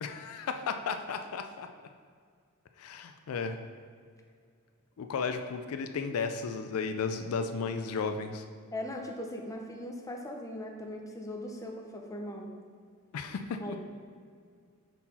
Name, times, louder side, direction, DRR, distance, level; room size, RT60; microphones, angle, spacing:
voice 1, 0.0-1.7 2.8-3.6 5.0-8.4 13.1-13.8, left 5 dB, 75° left, 7 dB, 0.4 m, -34 dB
voice 2, 8.7-12.5 13.6-13.8, left 1 dB, 15° left, 2 dB, 0.5 m, -39 dB
5.6 x 4.5 x 4.1 m, 2.1 s
head